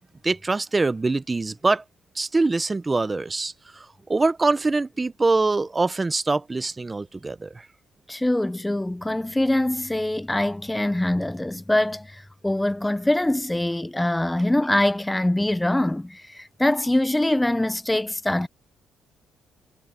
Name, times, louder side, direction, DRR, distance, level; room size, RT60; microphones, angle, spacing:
voice 1, 0.2-1.8 2.2-7.7, right 3 dB, 25° right, 0.8 m, -24 dB
voice 2, 8.1-12.1 12.4-18.5, left 1 dB, 10° left, 0.7 m, -23 dB
cardioid pair, 90°, 0 cm